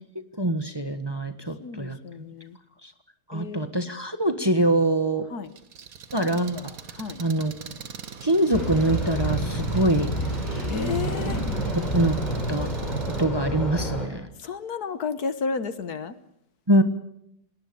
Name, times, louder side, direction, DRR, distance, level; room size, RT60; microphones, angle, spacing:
voice 1, 0.4-2.0 2.8-2.9 3.3-5.3 6.1-6.7 7.2-7.5 8.2-10.1 11.7-12.2 12.5-12.7 13.2-14.3 16.7-16.8, right 1 dB, 15° right, 8 dB, 1.4 m, -24 dB
voice 2, 1.6-2.6 3.3-3.7 5.3-5.5 7.0-7.2 10.7-11.4 14.4-16.2, left 5 dB, 60° left, 12 dB, 1.6 m, -32 dB
Engine, 5.5-13.2, right 6 dB, 55° right, 1.8 m, -42 dB
sound 1, 8.5-14.1, right 1 dB, 25° left, 5.5 m, -28 dB
29.0 x 20.0 x 7.0 m, 0.77 s
omnidirectional pair, 1.9 m